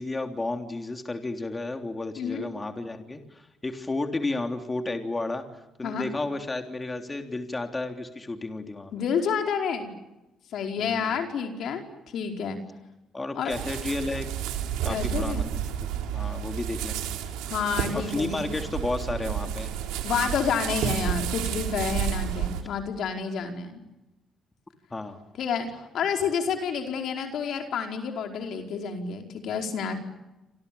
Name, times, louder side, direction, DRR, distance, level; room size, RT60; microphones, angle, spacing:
voice 1, 0.0-8.9 10.8-11.2 13.1-14.3 14.8-15.5 16.1-17.1 17.9-19.7 24.9-25.2, left 2 dB, 25° left, 5 dB, 3.3 m, -32 dB
voice 2, 2.2-2.5 5.8-6.1 8.9-9.9 10.5-11.8 12.1-12.6 13.3-13.5 14.9-15.5 17.5-18.4 20.0-23.8 25.4-30.0, left 6 dB, 70° left, 4 dB, 4.9 m, -29 dB
sound 1, 13.5-22.6, right 10 dB, 85° right, 3.5 m, -31 dB
28.5 x 27.0 x 7.1 m, 1.0 s
supercardioid pair, 70°, 0 cm